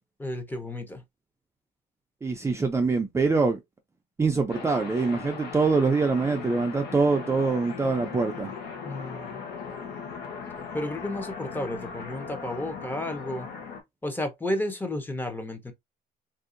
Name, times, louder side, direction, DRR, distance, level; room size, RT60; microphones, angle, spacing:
voice 1, 0.2-1.0 8.8-9.4 10.7-13.5 14.0-15.7, left 1 dB, 10° left, 0.8 m, -32 dB
voice 2, 2.2-3.6 4.2-8.5, right 4 dB, 15° right, 0.5 m, -24 dB
sound 1, 4.5-13.8, left 5 dB, 80° left, 1.1 m, -38 dB
3.4 x 2.6 x 2.5 m
cardioid pair, 110°, 17 cm